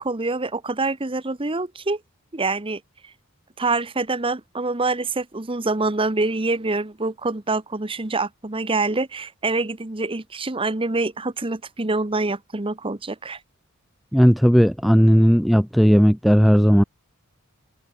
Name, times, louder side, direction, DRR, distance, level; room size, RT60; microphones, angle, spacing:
voice 1, 0.0-2.0 2.3-2.8 3.6-13.4, right 3 dB, 25° right, 1.1 m, -25 dB
voice 2, 14.1-16.8, equal, ahead, 0.4 m, -15 dB
head